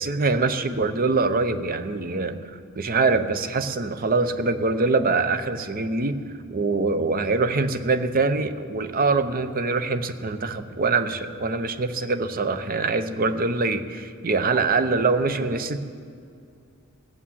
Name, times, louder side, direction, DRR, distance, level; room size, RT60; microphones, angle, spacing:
voice 1, 0.0-2.4 2.8-6.2 6.5-15.8, right 3 dB, 45° right, 10 dB, 0.7 m, -24 dB
16.0 x 8.6 x 7.4 m, 2.3 s
head